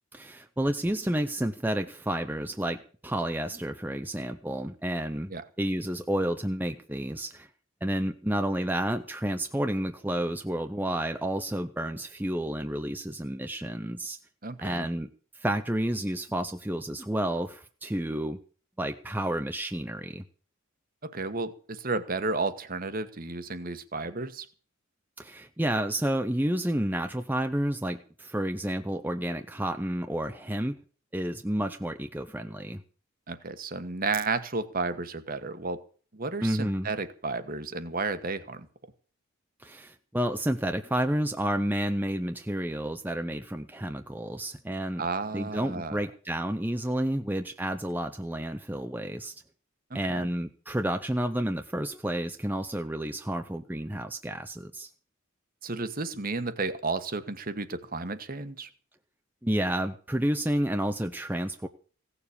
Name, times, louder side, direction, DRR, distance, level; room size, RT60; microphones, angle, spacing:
voice 1, 0.1-5.3 5.6-7.5 7.8-14.2 14.6-15.1 15.3-18.4 18.8-20.2 25.2-30.8 31.1-32.8 36.4-36.9 39.6-45.0 45.3-49.4 49.9-54.9 59.4-61.7, right 1 dB, 10° right, 7 dB, 0.7 m, -30 dB
voice 2, 14.4-14.9 21.0-24.5 33.3-35.8 36.1-38.7 45.0-46.0 49.9-50.3 55.6-58.7, right 3 dB, 45° right, 11 dB, 1.3 m, -32 dB
16.5 x 7.1 x 8.5 m, 0.42 s
head